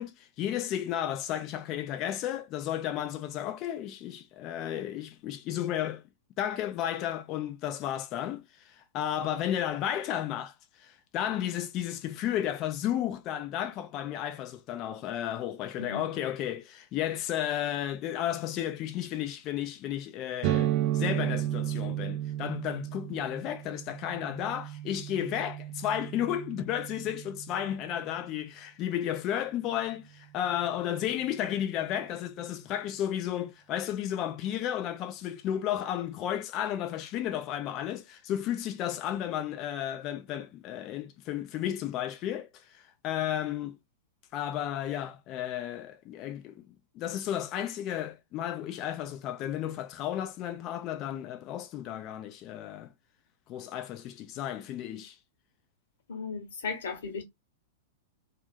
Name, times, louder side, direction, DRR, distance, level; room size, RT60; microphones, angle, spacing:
voice 1, 0.0-6.0 6.4-43.8 44.3-46.6 46.9-52.9 53.5-55.2, left 11 dB, 35° left, 0.4 m, -33 dB
voice 2, 15.8-16.1 56.1-57.2, left 4 dB, 65° left, 1.1 m, -36 dB
sound 1, 20.4-28.0, right 13 dB, 45° right, 0.3 m, -33 dB
2.6 x 2.4 x 2.5 m
figure-of-eight pair, 100°, 0 cm